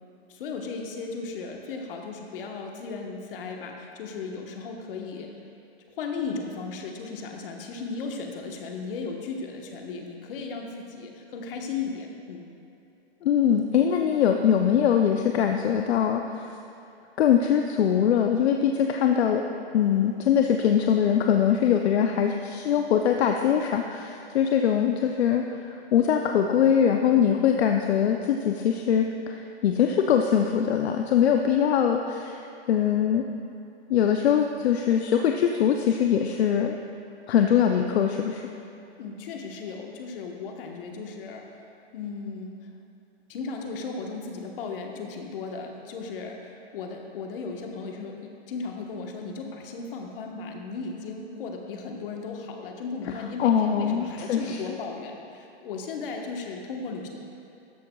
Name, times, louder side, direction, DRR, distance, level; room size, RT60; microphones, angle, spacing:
voice 1, 0.3-5.3 6.0-12.4 39.0-41.5 41.9-42.7 43.3-57.1, left 4 dB, 55° left, 2 dB, 1.2 m, -36 dB
voice 2, 13.2-16.5 17.2-19.4 19.7-32.4 32.7-33.2 33.9-36.8 37.3-38.4 53.4-54.6, left 8 dB, 75° left, 4 dB, 0.6 m, -22 dB
13.0 x 8.4 x 2.3 m, 2.8 s
hypercardioid pair, 150°, 33 cm